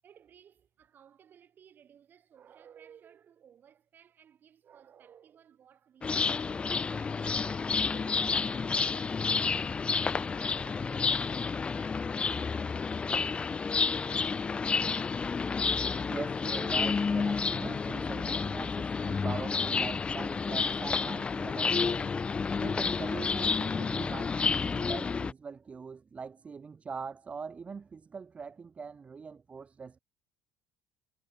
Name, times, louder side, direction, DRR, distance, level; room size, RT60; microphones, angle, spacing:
voice 1, 0.0-9.7 10.0-13.0, right 8 dB, 45° right, 3.7 m, -58 dB
sound 1, 6.0-25.3, left 5 dB, 25° left, 0.4 m, -30 dB
voice 2, 16.1-22.2 22.6-30.0, right 5 dB, 25° right, 1.2 m, -42 dB
sound 2, 16.2-23.7, left 1 dB, 5° left, 5.4 m, -66 dB
supercardioid pair, 105°, 5 cm